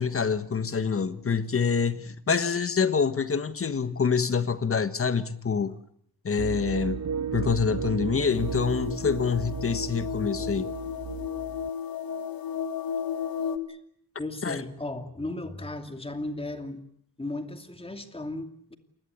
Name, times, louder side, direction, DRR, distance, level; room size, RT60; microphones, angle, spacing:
voice 1, 0.0-5.7 6.2-7.0 7.3-10.7 14.4-14.6, left 6 dB, 35° left, 1.5 m, -26 dB
sound 1, 6.4-11.7, right 7 dB, 50° right, 1.1 m, -34 dB
sound 2, 8.3-13.6, left 7 dB, 65° left, 2.0 m, -33 dB
voice 2, 14.2-16.8 17.2-18.8, left 2 dB, 15° left, 2.6 m, -35 dB
28.0 x 21.0 x 8.1 m
wide cardioid pair, 125°, 38 cm